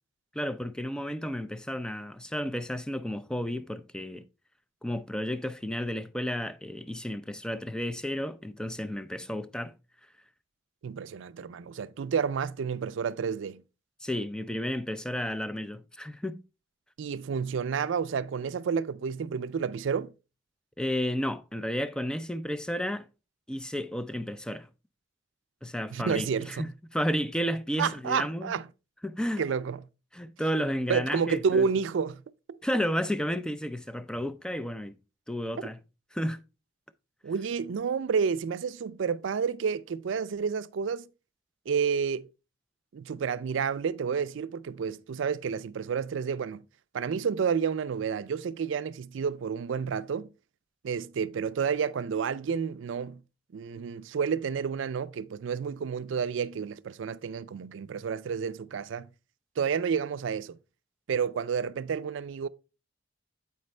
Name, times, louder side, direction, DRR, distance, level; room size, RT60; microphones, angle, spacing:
voice 1, 0.3-4.2 4.8-9.8 14.0-16.4 20.8-23.1 23.5-24.7 25.6-28.5 29.0-29.4 30.1-31.7 32.6-35.0 35.3-35.8 36.1-36.4, equal, 5° left, 0.3 m, -32 dB
voice 2, 10.8-13.6 17.0-20.1 25.9-26.7 27.8-28.6 29.4-29.8 30.9-32.2 32.5-32.6 37.2-41.1 41.7-42.3 42.9-46.6 46.9-50.3 50.8-53.2 53.5-59.1 59.6-60.6 61.1-62.5, right 6 dB, 75° right, 0.4 m, -30 dB
8.1 x 5.2 x 3.2 m
head